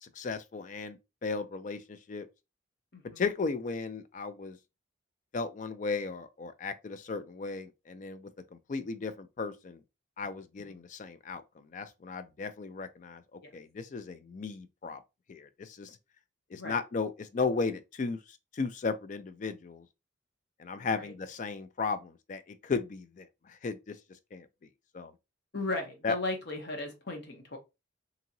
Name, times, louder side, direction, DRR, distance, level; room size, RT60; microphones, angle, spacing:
voice 1, 0.0-2.3 3.2-4.6 5.3-9.8 10.2-11.4 11.7-15.0 15.3-16.0 16.5-19.9 20.6-24.0 24.3-24.5 24.9-25.1 26.0-26.2, left 4 dB, 40° left, 0.3 m, -35 dB
voice 2, 20.8-21.1 25.5-27.6, left 2 dB, 55° left, 0.9 m, -36 dB
2.8 x 2.8 x 2.6 m
head